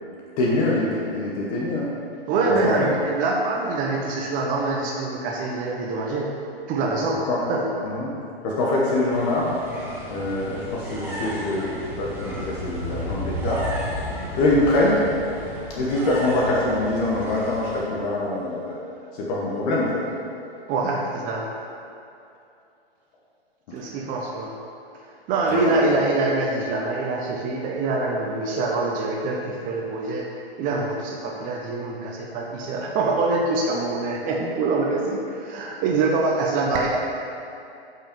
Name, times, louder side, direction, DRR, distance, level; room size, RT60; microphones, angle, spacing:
voice 1, 0.4-1.9 2.6-2.7 7.3-7.4 7.8-8.1 8.4-9.5 10.1-13.7 14.3-15.0 15.7-18.7 19.1-20.0 25.5-25.8, left 2 dB, 40° left, -4 dB, 1.5 m, -24 dB
voice 2, 2.3-6.3 6.7-7.2 7.5-7.6 20.7-21.5 23.7-24.5 25.3-37.0, right 3 dB, 25° right, -1 dB, 0.9 m, -25 dB
sound 1, 9.1-17.8, equal, 5° right, 1.6 m, -33 dB
8.6 x 5.8 x 5.3 m, 2.6 s
hypercardioid pair, 125°, 31 cm